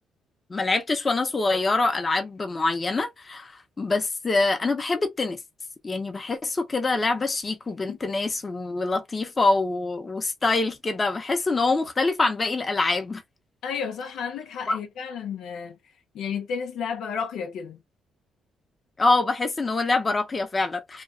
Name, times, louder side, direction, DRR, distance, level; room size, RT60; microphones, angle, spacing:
voice 1, 0.5-5.4 5.8-13.2 14.7-14.8 19.0-21.0, left 3 dB, 30° left, 0.7 m, -25 dB
voice 2, 13.6-15.8 16.1-17.8, left 6 dB, 80° left, 0.5 m, -32 dB
3.0 x 2.3 x 2.4 m
cardioid pair, 90°, 0 cm